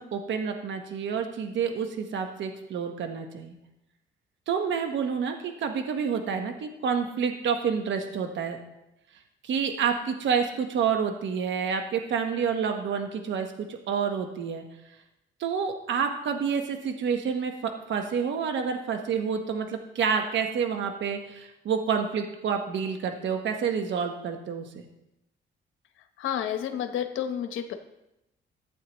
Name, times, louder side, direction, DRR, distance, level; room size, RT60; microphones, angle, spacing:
voice 1, 0.0-3.5 4.5-8.6 9.4-14.6 15.4-24.9, right 6 dB, 65° right, 5 dB, 1.1 m, -28 dB
voice 2, 26.2-27.7, left 9 dB, 85° left, 7 dB, 1.0 m, -30 dB
15.0 x 9.0 x 3.0 m, 0.89 s
cardioid pair, 90°, 20 cm